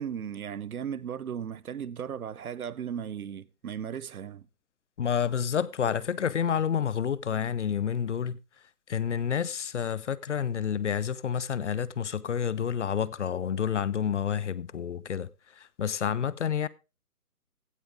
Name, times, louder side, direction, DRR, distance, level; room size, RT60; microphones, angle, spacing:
voice 1, 0.0-4.5, right 8 dB, 65° right, 0.8 m, -36 dB
voice 2, 5.0-8.4 8.9-15.3 15.6-16.7, left 8 dB, 50° left, 0.7 m, -29 dB
16.0 x 8.8 x 3.5 m
hypercardioid pair, 150°, 46 cm